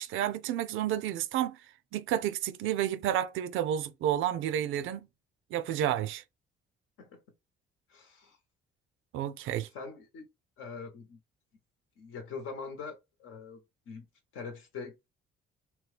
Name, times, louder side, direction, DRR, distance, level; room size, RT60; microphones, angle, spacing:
voice 1, 0.0-1.6 1.9-5.1 5.5-6.2 9.1-9.7, right 11 dB, 85° right, 0.4 m, -30 dB
voice 2, 7.9-8.4 9.7-10.3 10.6-11.2 12.0-13.6 13.9-14.0 14.3-15.1, left 5 dB, 80° left, 1.0 m, -43 dB
2.9 x 2.3 x 3.3 m
cardioid pair, 90°, 20 cm